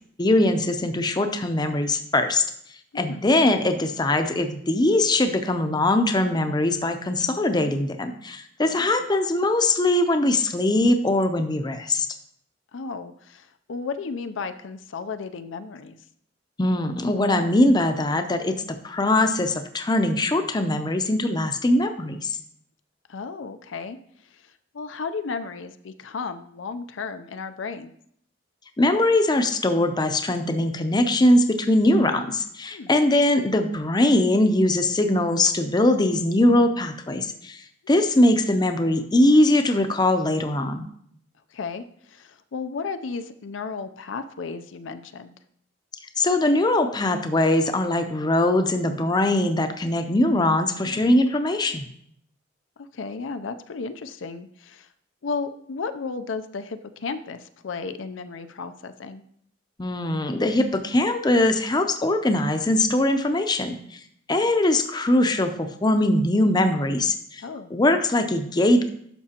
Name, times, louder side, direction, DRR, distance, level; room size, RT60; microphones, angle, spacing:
voice 1, 0.2-2.4 2.9-12.1 16.6-22.4 28.8-37.6 37.9-40.9 46.2-51.9 59.8-63.8 64.3-67.4 67.7-68.9, left 1 dB, 20° left, 7 dB, 0.6 m, -21 dB
voice 2, 2.9-3.3 8.7-8.9 12.7-16.0 23.1-24.0 24.3-24.4 24.7-27.9 32.7-32.9 37.9-38.0 41.5-45.3 50.7-51.2 52.8-54.9 55.2-59.2 67.4-67.7, left 4 dB, 80° left, 9 dB, 0.5 m, -34 dB
11.5 x 6.0 x 2.9 m, 0.68 s
head